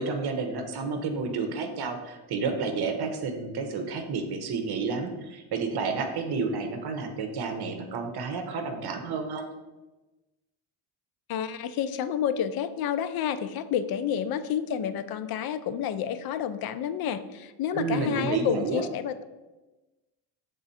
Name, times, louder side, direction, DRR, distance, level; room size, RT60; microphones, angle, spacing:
voice 1, 0.0-9.5 17.7-18.8, right 4 dB, 50° right, 6 dB, 1.0 m, -30 dB
voice 2, 11.3-19.2, left 9 dB, 50° left, 11 dB, 0.5 m, -29 dB
6.9 x 3.7 x 4.2 m, 1.1 s
cardioid pair, 135°, 49 cm